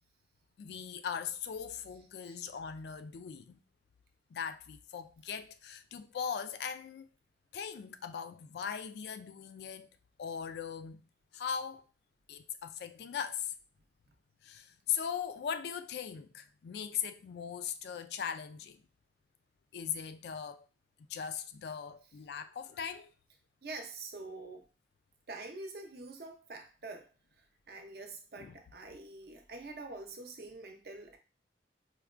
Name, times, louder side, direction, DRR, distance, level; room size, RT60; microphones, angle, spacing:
voice 1, 0.6-3.6 4.3-7.1 7.5-9.9 10.2-11.1 11.3-11.8 12.3-13.5 14.4-18.8 19.7-20.6 21.1-23.1 28.4-28.5, left 7 dB, 70° left, 0.3 m, -39 dB
voice 2, 23.6-24.7 25.3-27.1 27.7-31.2, right 2 dB, 60° right, 0.6 m, -45 dB
4.4 x 2.2 x 2.4 m
head